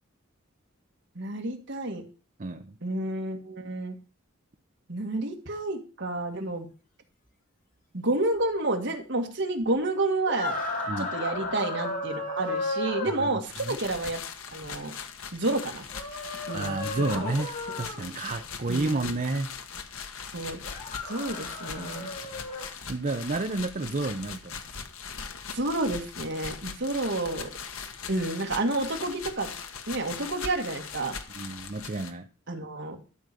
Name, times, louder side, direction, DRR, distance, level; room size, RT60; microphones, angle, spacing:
voice 1, 1.2-2.0 2.8-3.9 4.9-6.7 7.9-10.6 11.0-14.2 14.5-14.9 15.3-15.9 16.5-16.8 17.1-17.2 18.7-19.1 20.3-20.6 21.1-22.1 25.5-27.5 28.1-29.5 29.9-31.2 32.5-33.0, right 2 dB, 60° right, 4 dB, 1.9 m, -30 dB
voice 2, 2.4-2.7 10.9-11.1 13.1-13.3 13.6-13.8 16.2-17.5 17.8-19.5 22.5-24.6 31.3-32.3, right 2 dB, 40° right, 7 dB, 0.7 m, -31 dB
sound 1, 10.3-13.2 15.9-18.0 20.6-22.7, left 2 dB, 45° left, 4.1 m, -34 dB
sound 2, 13.5-32.1, left 6 dB, 85° left, 1.3 m, -40 dB
12.5 x 4.9 x 6.9 m, 0.35 s
head